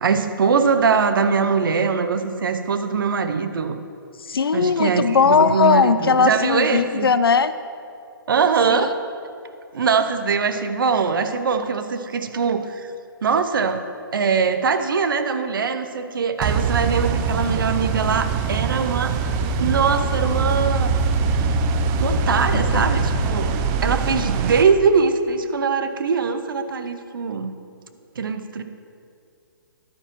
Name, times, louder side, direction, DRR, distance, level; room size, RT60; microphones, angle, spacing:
voice 1, 0.0-3.8 4.5-7.1 8.3-9.0 9.7-12.9 13.2-13.8 14.1-19.2 19.6-20.9 21.3-21.6 22.0-23.6 23.8-27.5 28.2-28.6, right 5 dB, 65° right, 9 dB, 0.7 m, -22 dB
voice 2, 4.3-7.5 8.7-8.9 22.5-22.8, left 5 dB, 80° left, 13 dB, 0.5 m, -18 dB
sound 1, 16.4-24.6, right 4 dB, 25° right, 0.4 m, -22 dB
11.5 x 9.1 x 3.1 m, 2.4 s
figure-of-eight pair, 130°, 12 cm